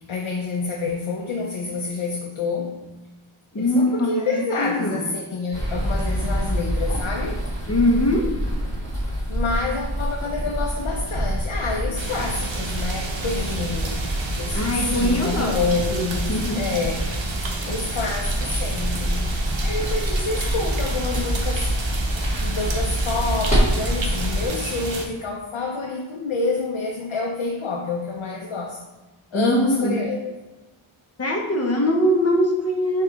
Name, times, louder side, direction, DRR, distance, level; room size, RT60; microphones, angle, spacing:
voice 1, 0.0-2.8 3.6-7.4 9.3-14.0 14.4-16.2 16.5-17.1 17.7-19.3 19.6-21.7 22.4-28.8 29.3-30.3, left 4 dB, 70° left, 0 dB, 0.6 m, -28 dB
voice 2, 3.5-4.3 4.6-5.1 7.7-8.4 14.5-16.7 29.3-30.1 31.2-33.0, left 1 dB, 30° left, 2 dB, 0.7 m, -22 dB
sound 1, 5.5-24.5, equal, 15° left, 1.5 m, -26 dB
sound 2, 12.0-25.1, right 3 dB, 65° right, 0.7 m, -31 dB
4.8 x 2.4 x 3.9 m, 1.1 s
wide cardioid pair, 65°, 50 cm